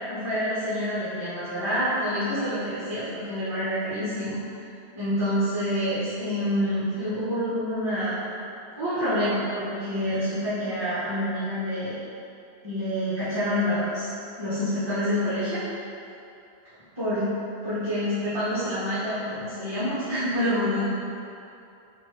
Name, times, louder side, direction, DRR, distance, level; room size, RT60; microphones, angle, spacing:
voice 1, 0.0-4.4 4.9-8.2 8.7-11.9 12.6-14.1 14.4-15.8 17.0-17.2 17.6-20.8, equal, 25° right, -14 dB, 1.0 m, -27 dB
3.9 x 2.5 x 4.6 m, 2.7 s
omnidirectional pair, 1.1 m